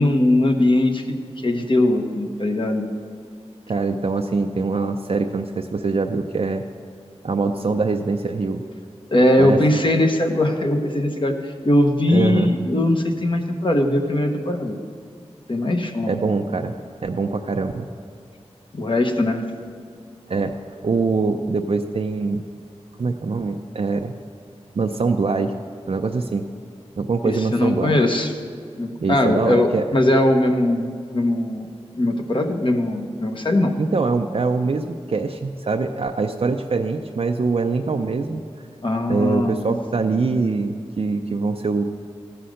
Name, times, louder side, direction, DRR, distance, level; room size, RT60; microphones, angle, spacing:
voice 1, 0.0-2.8 9.1-14.7 15.5-16.1 18.7-19.4 27.2-28.3 28.8-31.7 32.0-33.7 38.8-39.6, left 1 dB, 45° left, 4 dB, 1.0 m, -20 dB
voice 2, 3.7-6.6 7.2-8.6 9.4-9.6 12.1-12.5 16.1-16.7 17.0-17.9 20.3-22.4 23.0-24.1 24.8-25.5 25.9-26.4 27.0-28.0 29.0-29.8 33.8-38.4 39.1-41.8, right 4 dB, 60° right, 4 dB, 0.5 m, -23 dB
14.0 x 5.7 x 6.4 m, 2.3 s
wide cardioid pair, 75°, 11 cm